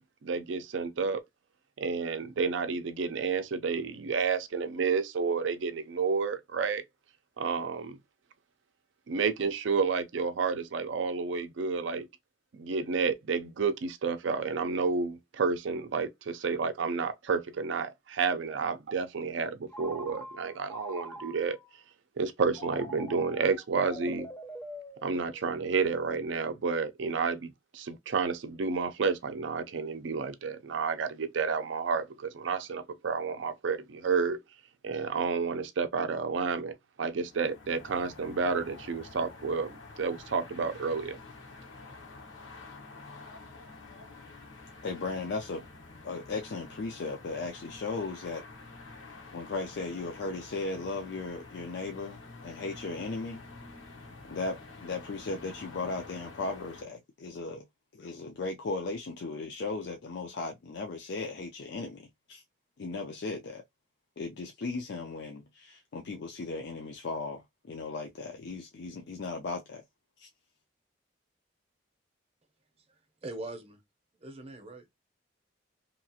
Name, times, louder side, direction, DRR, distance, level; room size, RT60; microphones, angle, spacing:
voice 1, 0.2-1.2 1.8-6.8 7.4-8.0 9.1-12.1 12.5-21.6 22.2-24.3 25.0-34.4 34.8-41.2, right 5 dB, 70° right, 0.4 m, -30 dB
Telephone, 19.7-21.7 22.5-25.6, equal, 10° left, 0.5 m, -44 dB
sound 1, 37.1-56.8, left 3 dB, 80° left, 0.9 m, -48 dB
voice 2, 44.8-45.6 46.0-48.4 49.3-53.4 54.3-57.7 57.9-62.4 62.8-63.6 64.2-69.8 70.2-70.3, left 3 dB, 60° left, 0.4 m, -36 dB
voice 3, 72.9-73.8 74.2-74.9, right 2 dB, 30° right, 0.7 m, -42 dB
2.9 x 2.4 x 2.7 m
head